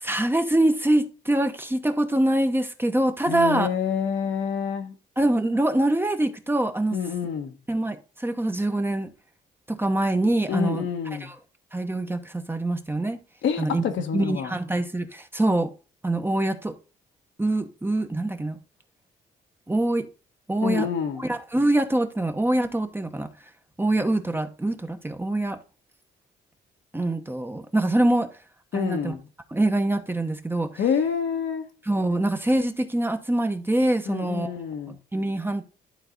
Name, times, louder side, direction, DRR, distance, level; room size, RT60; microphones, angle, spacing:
voice 1, 0.0-3.7 5.2-7.0 7.7-9.1 9.7-10.9 11.2-11.4 11.7-13.2 13.6-13.8 14.1-15.7 16.0-16.7 17.4-18.6 19.7-20.1 20.5-20.9 21.2-23.3 23.8-25.6 26.9-28.3 28.7-29.1 29.5-30.7 31.9-34.5 34.9-35.6, right 1 dB, 10° right, 1.0 m, -24 dB
voice 2, 3.3-4.9 6.9-7.6 10.5-11.3 13.4-14.5 20.6-21.3 28.7-29.2 30.8-31.7 34.1-35.0, left 7 dB, 70° left, 1.3 m, -27 dB
11.5 x 3.9 x 3.9 m
cardioid pair, 90°, 20 cm